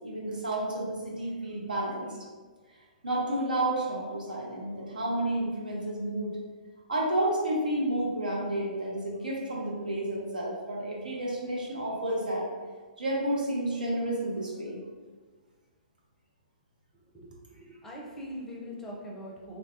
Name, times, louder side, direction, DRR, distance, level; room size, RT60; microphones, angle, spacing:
voice 1, 0.0-2.2 3.0-6.4 6.9-12.5 13.0-14.8, right 1 dB, 75° right, -4 dB, 0.9 m, -31 dB
voice 2, 17.0-19.6, equal, 10° left, -4 dB, 0.6 m, -42 dB
3.1 x 2.3 x 2.7 m, 1.5 s
figure-of-eight pair, 120°, 5 cm